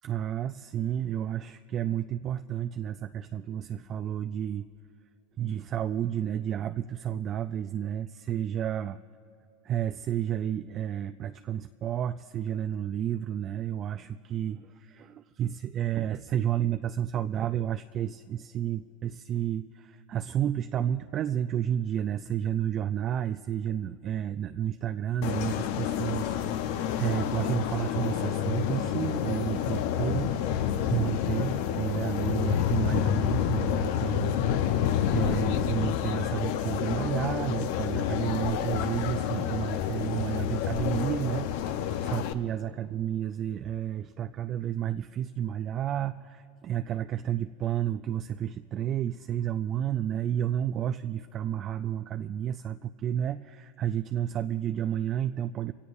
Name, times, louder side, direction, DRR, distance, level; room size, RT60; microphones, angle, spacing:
voice 1, 0.0-4.7 5.4-9.0 9.6-30.5 30.9-34.4 34.7-55.7, right 10 dB, 40° right, 9 dB, 0.4 m, -31 dB
sound 1, 25.2-42.3, left 9 dB, 70° left, 0.7 m, -29 dB
24.0 x 17.0 x 2.6 m, 2.7 s
hypercardioid pair, 105°, 0 cm